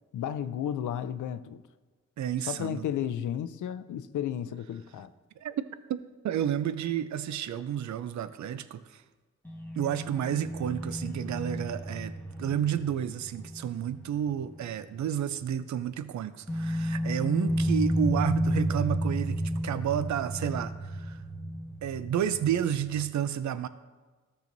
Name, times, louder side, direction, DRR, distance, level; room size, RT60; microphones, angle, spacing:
voice 1, 0.1-1.6 2.5-5.1, left 10 dB, 85° left, 0.5 m, -33 dB
voice 2, 2.2-2.9 5.4-5.6 5.9-6.0 6.2-9.0 9.8-12.1 12.4-21.2 21.8-23.7, right 9 dB, 70° right, 0.5 m, -31 dB
sound 1, 9.4-14.9 15.2-15.3 16.5-23.0, equal, 5° left, 1.4 m, -32 dB
13.5 x 6.9 x 2.6 m
cardioid pair, 50°, 30 cm